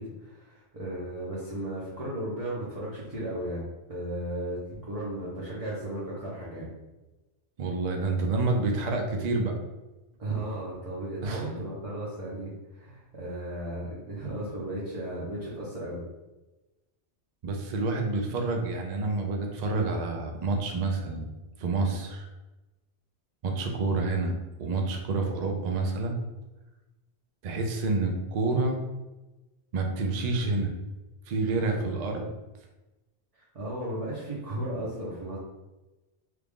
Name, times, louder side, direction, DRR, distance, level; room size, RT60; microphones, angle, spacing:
voice 1, 0.0-3.6 3.9-6.7 10.2-16.0 31.8-31.9 33.3-35.4, right 1 dB, 35° right, -8 dB, 0.8 m, -35 dB
voice 2, 7.6-9.5 11.2-11.4 17.4-21.3 21.6-22.3 23.4-24.3 24.6-26.2 27.4-28.8 29.7-30.7 31.3-32.3, right 3 dB, 55° right, 2 dB, 0.5 m, -28 dB
3.2 x 2.4 x 3.5 m, 1.1 s
omnidirectional pair, 1.2 m